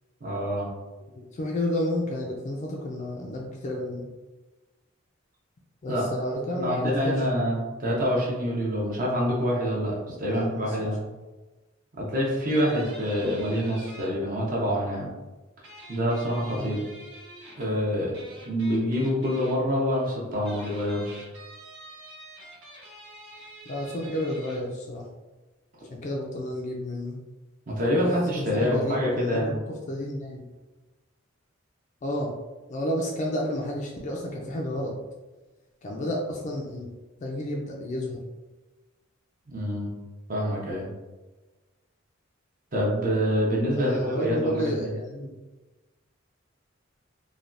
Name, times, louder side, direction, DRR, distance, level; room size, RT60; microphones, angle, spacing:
voice 1, 0.2-0.7 5.9-6.1 6.6-11.0 12.0-15.1 15.9-16.8 17.6-18.1 18.5-21.3 27.7-29.6 39.5-39.9 40.3-40.9 42.7-44.9, equal, 45° right, -3 dB, 0.6 m, -26 dB
voice 2, 1.2-4.1 5.8-7.3 10.3-10.8 16.6-16.8 23.7-25.1 25.9-27.2 28.4-29.5 29.9-30.5 32.0-32.3 32.7-34.9 35.8-36.9 37.2-38.2 43.7-45.3, left 1 dB, 35° left, -1 dB, 0.3 m, -31 dB
sound 1, 12.5-14.1 15.6-17.7 18.1-19.5 20.3-24.6, right 1 dB, 70° right, 1.1 m, -46 dB
3.2 x 2.2 x 2.5 m, 1.2 s
head